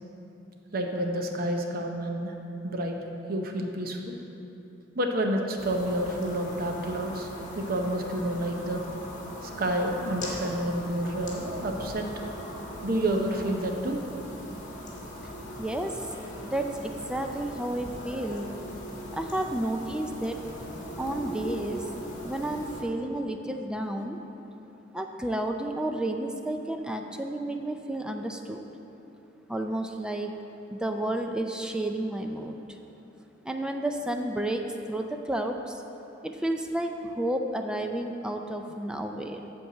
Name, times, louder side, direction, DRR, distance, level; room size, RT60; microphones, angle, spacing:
voice 1, 0.7-2.3 2.6-3.0 3.3-4.2 4.9-7.3 7.6-8.8 9.4-12.1 12.8-14.0, right 1 dB, 55° right, 3 dB, 0.8 m, -29 dB
sound 1, 5.6-22.8, equal, 40° left, 1.6 m, -40 dB
voice 2, 15.6-16.1 16.4-18.5 19.1-20.4 21.0-21.8 22.2-24.2 24.9-28.6 29.5-30.3 30.7-32.8 33.4-35.8 36.2-39.5, right 1 dB, 5° right, 4 dB, 0.4 m, -31 dB
8.2 x 4.6 x 7.4 m, 3.0 s
head